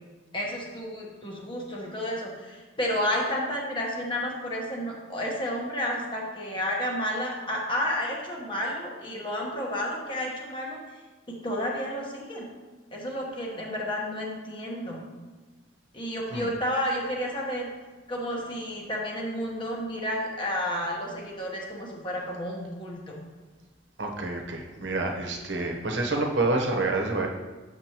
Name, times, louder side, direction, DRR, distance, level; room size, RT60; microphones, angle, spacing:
voice 1, 0.3-10.8 11.3-12.5 12.9-15.0 15.9-17.7 18.1-23.2, equal, 25° left, -2 dB, 1.2 m, -31 dB
voice 2, 24.0-27.3, right 2 dB, 75° right, 2 dB, 1.0 m, -28 dB
7.7 x 6.2 x 2.9 m, 1.3 s
head